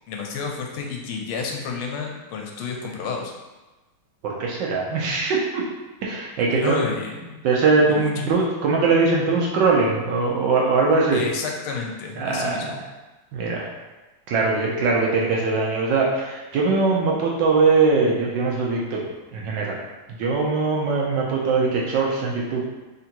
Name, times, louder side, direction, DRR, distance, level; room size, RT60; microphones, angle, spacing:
voice 1, 0.1-3.3 6.5-7.4 7.9-8.3 11.1-12.8, left 5 dB, 85° left, 1 dB, 1.5 m, -30 dB
voice 2, 4.2-5.6 6.0-6.9 7.4-11.2 12.2-12.8 13.3-13.7 14.3-19.8 20.2-22.6, right 4 dB, 70° right, -2 dB, 1.2 m, -21 dB
3.7 x 2.5 x 4.3 m, 1.1 s
omnidirectional pair, 2.3 m